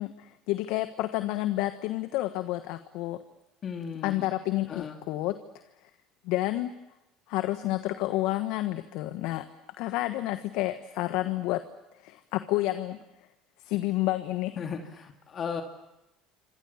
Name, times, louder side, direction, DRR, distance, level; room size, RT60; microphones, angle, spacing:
voice 1, 0.0-3.2 4.0-5.3 5.8-5.9 6.2-6.7 7.3-9.5 9.8-11.6 11.9-13.3 13.6-14.6, left 16 dB, 70° left, 10 dB, 1.2 m, -30 dB
voice 2, 3.6-4.3 4.7-5.0 14.6-15.6, left 6 dB, 45° left, 3 dB, 2.8 m, -36 dB
27.5 x 26.0 x 7.2 m, 0.92 s
hypercardioid pair, 70°, 0 cm